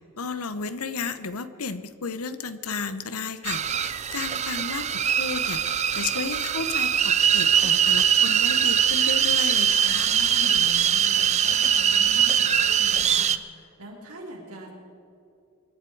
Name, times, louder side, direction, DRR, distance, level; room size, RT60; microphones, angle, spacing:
voice 1, 0.2-4.9 5.2-10.1, left 4 dB, 80° left, 12 dB, 0.9 m, -33 dB
sound 1, 3.5-13.4, right 8 dB, 30° right, 0.5 m, -22 dB
voice 2, 9.7-14.7, equal, 90° right, -2 dB, 4.0 m, -42 dB
25.0 x 11.5 x 4.7 m, 2.7 s
head